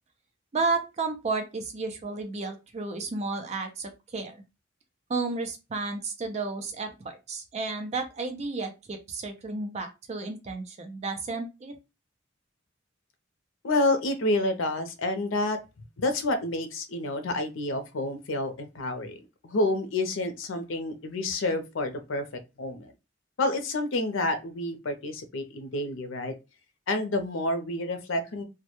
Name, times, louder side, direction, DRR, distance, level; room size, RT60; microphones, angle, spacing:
voice 1, 0.5-4.4 5.1-11.8, right 3 dB, 35° right, 5 dB, 0.4 m, -32 dB
voice 2, 13.6-15.6 16.0-19.2 19.4-22.2 22.6-22.9 23.4-26.3 26.9-28.4, left 2 dB, 85° left, 7 dB, 0.5 m, -29 dB
2.2 x 2.1 x 2.8 m, 0.26 s
head